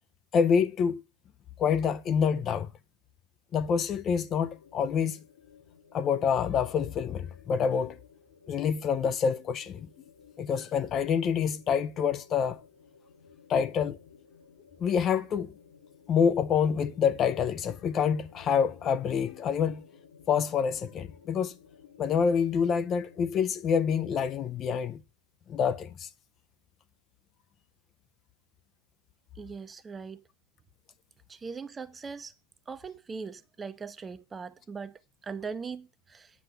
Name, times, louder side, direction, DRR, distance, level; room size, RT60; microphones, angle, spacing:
voice 1, 0.3-1.0 1.6-2.7 3.5-5.2 5.9-8.0 8.5-9.9 10.4-12.6 13.5-14.0 14.8-15.5 16.1-19.8 20.3-21.5 22.0-25.0 25.5-26.1, left 7 dB, 30° left, 0.6 m, -27 dB
sound 1, 4.1-23.8, left 6 dB, 60° left, 3.8 m, -57 dB
voice 2, 29.4-30.2 31.3-32.3 32.7-36.3, right 5 dB, 15° right, 0.7 m, -40 dB
9.3 x 6.6 x 6.4 m
figure-of-eight pair, 90°, 0 cm